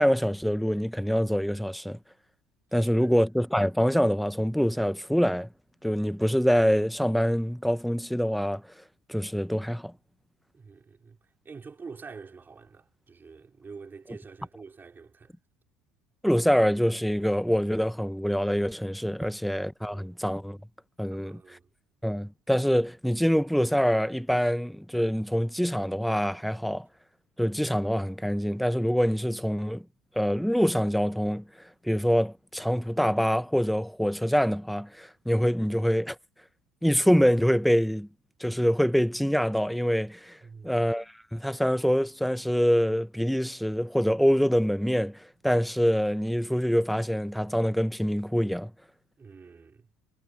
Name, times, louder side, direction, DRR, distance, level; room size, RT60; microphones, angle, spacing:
voice 1, 0.0-2.0 2.7-5.5 5.8-8.6 9.1-9.9 16.2-20.6 21.0-21.4 22.0-26.9 27.4-29.8 30.2-31.4 31.8-36.2 36.8-38.1 38.4-40.4 40.6-45.2 45.4-48.7, equal, ahead, 0.8 m, -25 dB
voice 2, 2.7-3.1 10.5-11.2 11.4-15.3 21.1-21.7 40.4-40.7 49.2-49.9, right 5 dB, 25° right, 4.1 m, -46 dB
supercardioid pair, 100°, 8 cm